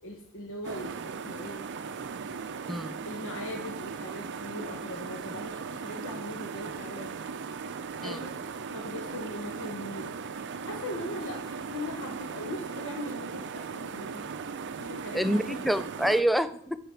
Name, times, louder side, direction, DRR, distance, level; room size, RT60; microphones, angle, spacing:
voice 1, 0.0-1.7 3.0-7.2 8.0-10.1 10.6-14.2 14.8-15.6, left 1 dB, 60° left, 1 dB, 1.2 m, -40 dB
sound 1, 0.6-16.2, right 5 dB, 50° right, 0.5 m, -38 dB
voice 2, 2.7-3.0 8.0-8.2 15.1-16.8, equal, ahead, 11 dB, 0.4 m, -27 dB
8.2 x 5.0 x 5.9 m, 0.63 s
head